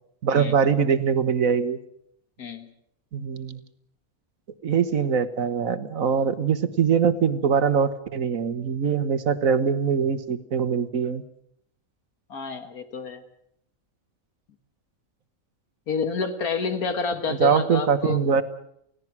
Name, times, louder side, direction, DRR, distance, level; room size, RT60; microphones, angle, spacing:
voice 1, 0.2-1.8 3.1-3.6 4.6-11.2 17.4-18.4, right 6 dB, 70° right, 12 dB, 1.6 m, -22 dB
voice 2, 12.3-13.2 15.9-18.2, left 5 dB, 90° left, 8 dB, 2.2 m, -29 dB
29.0 x 17.0 x 6.1 m, 0.72 s
omnidirectional pair, 1.5 m